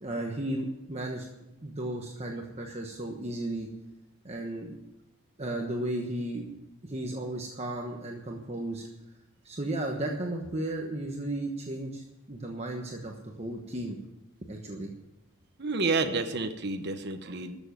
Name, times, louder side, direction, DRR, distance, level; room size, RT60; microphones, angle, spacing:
voice 1, 0.0-3.7 4.2-4.8 5.4-6.5 6.8-8.9 9.4-14.0 14.4-14.9, right 1 dB, 30° right, 1 dB, 1.2 m, -34 dB
voice 2, 15.6-17.6, right 3 dB, 50° right, 6 dB, 1.0 m, -29 dB
13.5 x 7.2 x 9.1 m, 0.95 s
head